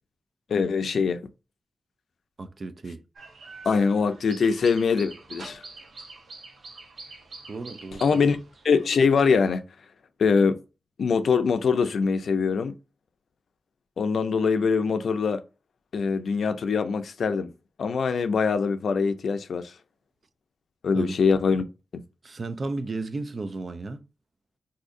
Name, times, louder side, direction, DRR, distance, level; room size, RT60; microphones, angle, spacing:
voice 1, 0.5-1.2 3.6-5.6 8.0-8.4 8.6-9.6 10.2-10.6 11.0-12.8 14.0-15.4 15.9-17.5 17.8-19.7 20.8-21.6 21.9-22.0, left 5 dB, 80° left, 0.4 m, -23 dB
voice 2, 2.4-3.0 7.5-8.3 20.9-21.1 22.2-24.0, right 3 dB, 50° right, 0.4 m, -34 dB
sound 1, 3.2-9.0, right 3 dB, 75° right, 0.8 m, -45 dB
2.6 x 2.5 x 3.7 m
wide cardioid pair, 85°, 0 cm